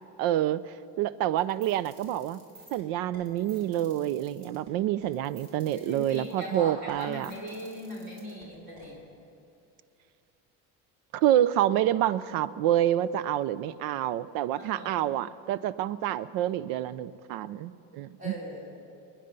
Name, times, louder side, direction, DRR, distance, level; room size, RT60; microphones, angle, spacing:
voice 1, 0.2-2.4 2.7-7.3 11.1-18.3, right 12 dB, 80° right, 17 dB, 0.6 m, -28 dB
sound 1, 1.4-8.9, right 2 dB, 60° right, 4.0 m, -53 dB
voice 2, 5.8-9.0 14.6-15.1 18.2-18.8, equal, 25° right, -4 dB, 3.9 m, -39 dB
26.5 x 10.0 x 5.3 m, 2.7 s
cardioid pair, 175°, 34 cm